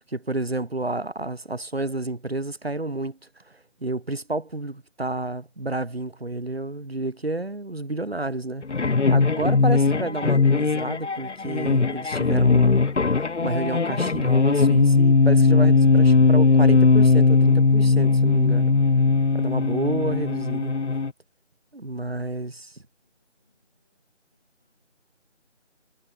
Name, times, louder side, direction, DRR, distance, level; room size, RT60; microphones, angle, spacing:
voice 1, 0.1-3.2 3.8-18.7 19.3-20.7 21.7-22.5, right 2 dB, 55° right, 0.8 m, -30 dB
sound 1, 8.6-21.1, left 4 dB, 70° left, 0.7 m, -19 dB
voice 2, 21.8-25.1, left 3 dB, ahead, 7.7 m, -75 dB
figure-of-eight pair, 180°, 36 cm